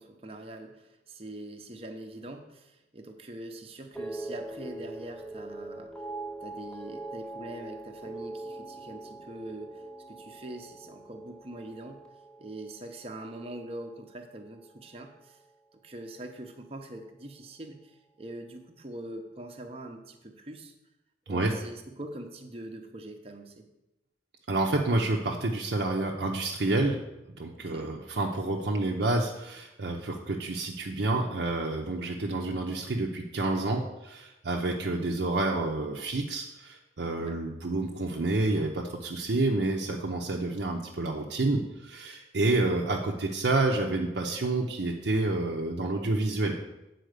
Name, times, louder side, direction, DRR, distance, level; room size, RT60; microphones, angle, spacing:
voice 1, 0.0-5.9 6.4-9.8 10.1-12.0 12.4-15.4 15.8-20.7 21.3-23.6 27.6-27.9 37.2-37.4, right 1 dB, 30° right, 4 dB, 0.8 m, -43 dB
sound 1, 3.9-14.3 14.6-15.2, right 2 dB, 5° left, 0.5 m, -42 dB
voice 2, 24.5-27.0 27.4-46.6, right 2 dB, 65° right, 0 dB, 0.7 m, -29 dB
8.0 x 4.3 x 6.5 m, 0.95 s
head